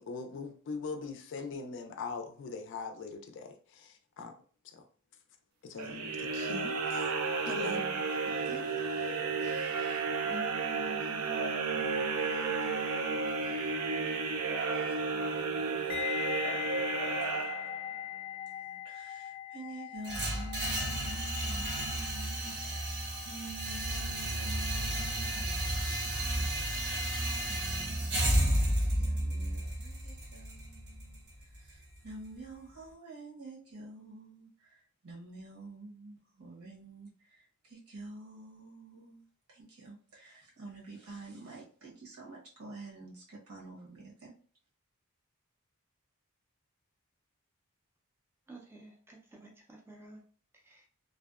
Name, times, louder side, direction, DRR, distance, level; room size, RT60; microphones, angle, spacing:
voice 1, 0.0-4.3 4.6-4.8 5.6-7.1 7.4-8.1, left 4 dB, 55° left, 0.4 m, -41 dB
sound 1, 5.8-18.0, right 4 dB, 85° right, 0.4 m, -33 dB
voice 2, 8.2-39.2 39.5-44.3, right 2 dB, 70° right, 1.0 m, -49 dB
sound 2, 15.9-24.9 25.1-25.4, left 12 dB, 20° left, 0.7 m, -41 dB
sound 3, 20.0-32.1, right 1 dB, 55° right, 0.7 m, -32 dB
voice 3, 48.5-50.2 50.5-50.9, right 2 dB, 10° right, 0.4 m, -53 dB
2.5 x 2.1 x 2.3 m
head